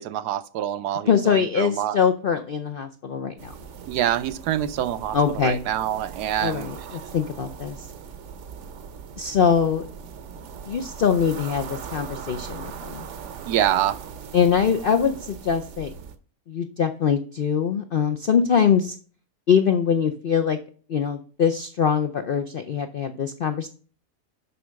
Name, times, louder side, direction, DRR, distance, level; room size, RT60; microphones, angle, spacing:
voice 1, 0.0-2.0 3.9-5.2 5.4-6.7 13.5-14.0, right 11 dB, 80° right, 1.2 m, -26 dB
voice 2, 1.1-3.5 5.1-5.6 6.4-7.8 9.2-9.9 10.7-13.0 14.3-15.9 16.5-19.0 19.5-20.6 20.9-23.7, left 7 dB, 65° left, 0.5 m, -23 dB
sound 1, 3.4-16.2, right 6 dB, 55° right, 0.9 m, -40 dB
7.0 x 5.6 x 6.3 m
omnidirectional pair, 1.7 m